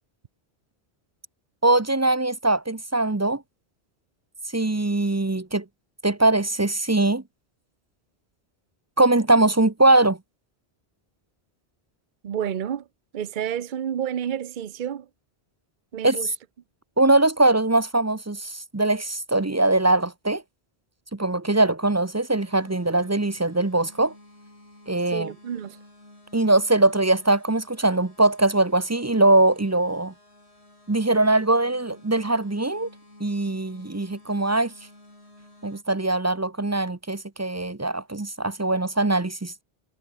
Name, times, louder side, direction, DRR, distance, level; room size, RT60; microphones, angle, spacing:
voice 1, 1.6-3.4 4.5-5.6 6.0-7.2 9.0-10.2 16.0-16.3 17.0-20.4 21.1-24.1 24.9-25.3 26.3-30.1 30.9-32.9 33.2-34.7 35.6-39.5, right 2 dB, 15° right, 0.7 m, -21 dB
voice 2, 12.2-12.9 13.1-15.1 15.9-16.3 25.1-25.8, right 9 dB, 50° right, 0.8 m, -30 dB
sound 1, 22.3-35.8, left 1 dB, 75° left, 7.8 m, -52 dB
omnidirectional pair, 1.1 m